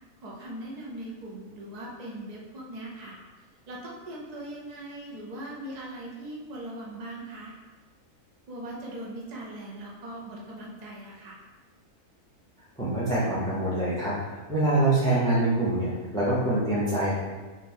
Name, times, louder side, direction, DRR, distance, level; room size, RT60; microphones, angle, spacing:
voice 1, 0.2-3.2 3.7-7.5 8.5-11.4, right 1 dB, 60° right, -3 dB, 0.4 m, -40 dB
voice 2, 12.8-17.1, right 2 dB, 5° left, -9 dB, 0.7 m, -25 dB
3.5 x 2.9 x 4.3 m, 1.3 s
omnidirectional pair, 1.6 m